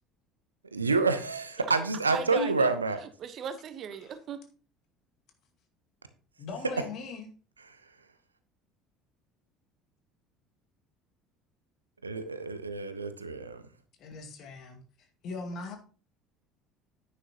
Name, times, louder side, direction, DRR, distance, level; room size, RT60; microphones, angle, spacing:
voice 1, 0.7-3.0 12.0-13.6, right 3 dB, 85° right, 0.9 m, -28 dB
voice 2, 2.0-2.7 3.0-4.4, right 7 dB, 45° right, 1.1 m, -39 dB
voice 3, 6.4-7.3 14.0-14.8 15.2-15.8, left 3 dB, 50° left, 2.1 m, -39 dB
10.0 x 9.5 x 3.0 m
figure-of-eight pair, 60°, 0 cm